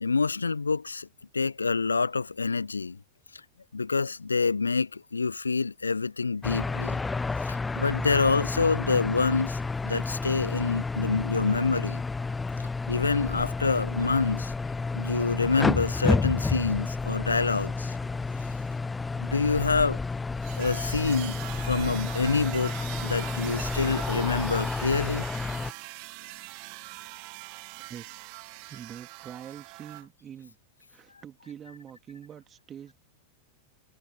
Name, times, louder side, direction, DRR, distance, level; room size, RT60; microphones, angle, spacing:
voice 1, 0.0-1.1 1.3-3.0 3.7-7.0 7.4-12.0 12.9-14.5 14.9-18.0 19.2-20.0 20.6-22.7 23.0-25.3, left 4 dB, 75° left, 0.6 m, -27 dB
sound 1, 6.4-25.7, left 3 dB, 10° left, 1.1 m, -30 dB
sound 2, 20.4-30.0, right 40 dB or more, 45° right, 1.2 m, -42 dB
voice 2, 27.9-28.3 28.7-30.6 30.9-32.9, right 9 dB, 25° right, 2.6 m, -45 dB
figure-of-eight pair, 90°, 0 cm